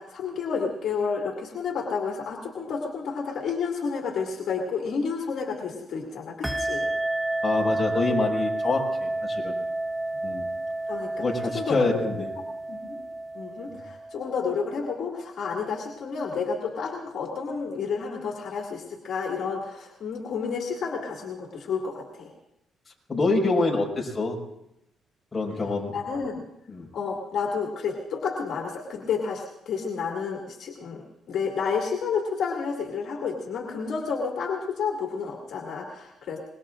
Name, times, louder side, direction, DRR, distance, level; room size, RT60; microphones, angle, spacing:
voice 1, 0.0-6.9 10.9-11.1 11.4-13.0 13.3-22.3 25.9-26.5 26.9-36.4, left 5 dB, 65° left, 0 dB, 2.3 m, -30 dB
sound 1, 6.4-14.6, right 2 dB, 5° right, 0.8 m, -30 dB
voice 2, 7.4-9.5 10.2-10.5 11.2-12.3 23.1-24.4 25.3-25.9 26.7-26.9, left 3 dB, 25° left, -2 dB, 5.4 m, -26 dB
25.0 x 22.0 x 2.5 m, 0.85 s
cardioid pair, 90°, 0 cm